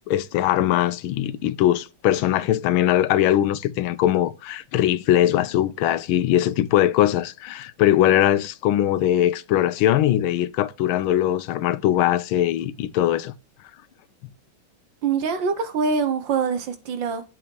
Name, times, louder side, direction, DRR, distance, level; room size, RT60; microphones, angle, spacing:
voice 1, 0.1-13.3, left 12 dB, 90° left, 1.4 m, -21 dB
voice 2, 15.0-17.2, right 5 dB, 65° right, 1.7 m, -24 dB
7.9 x 4.4 x 4.6 m
omnidirectional pair, 2.3 m